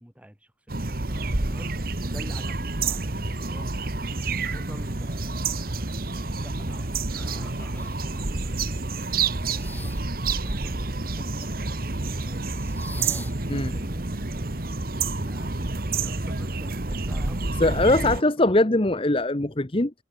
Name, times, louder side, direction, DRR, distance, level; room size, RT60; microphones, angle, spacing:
voice 1, 0.0-1.7 2.0-3.8 4.0-5.9 6.4-11.8 12.2-12.4 13.6-14.1 15.2-17.6 17.9-18.6, equal, 10° right, 6.9 m, -47 dB
sound 1, 0.7-18.2, right 3 dB, 55° right, 1.6 m, -29 dB
sound 2, 2.0-2.1 2.6-3.5 3.8-8.4 9.0-10.2 10.5-11.6 12.3-14.8, left 2 dB, 10° left, 5.7 m, -49 dB
sound 3, 7.1-7.6, right 1 dB, 75° right, 3.2 m, -45 dB
voice 2, 17.6-19.9, left 2 dB, 30° left, 1.2 m, -21 dB
head